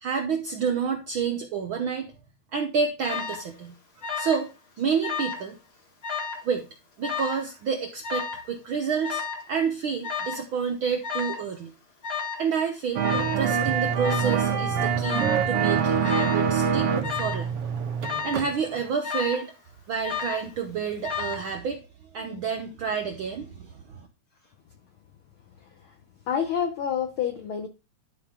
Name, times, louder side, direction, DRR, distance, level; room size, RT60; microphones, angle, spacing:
voice 1, 0.0-2.1 2.5-3.7 4.1-4.5 4.8-5.6 6.4-6.7 7.0-11.7 12.4-17.5 18.2-19.5 19.9-21.8 22.1-24.1, right 6 dB, 75° right, 1.1 m, -29 dB
Alarm, 3.0-3.5 4.0-4.5 4.8-5.5 6.0-6.5 7.0-7.5 8.0-8.5 9.0-9.5 10.0-10.5 11.0-11.5 12.0-12.5 13.0-13.5 14.0-14.5 15.0-15.5 16.0-16.5 17.0-17.5 18.0-18.5 19.0-19.5 20.0-20.5 21.0-21.5, left 6 dB, 40° left, 0.9 m, -32 dB
sound 1, 13.0-18.5 18.8-18.9, right 7 dB, 60° right, 1.7 m, -25 dB
voice 2, 26.3-27.7, left 8 dB, 80° left, 1.2 m, -27 dB
11.5 x 5.0 x 3.6 m
omnidirectional pair, 3.4 m